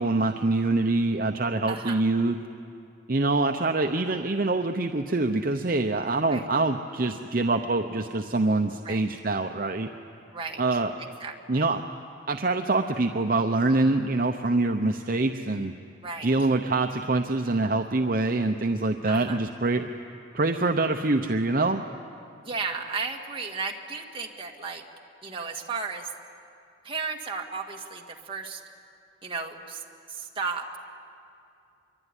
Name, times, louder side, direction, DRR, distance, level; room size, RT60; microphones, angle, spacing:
voice 1, 0.0-2.4 3.1-9.9 10.6-10.9 11.5-11.8 12.3-15.7 16.2-19.9 20.3-21.8, right 2 dB, 45° right, 5 dB, 0.8 m, -25 dB
voice 2, 1.7-2.0 6.3-6.4 8.8-9.0 10.3-11.6 16.0-16.3 19.1-19.4 22.5-24.8 25.2-26.1 26.8-28.6 29.2-29.8 30.1-30.8, right 4 dB, 25° right, 1 dB, 1.9 m, -34 dB
25.5 x 23.5 x 9.9 m, 2.5 s
head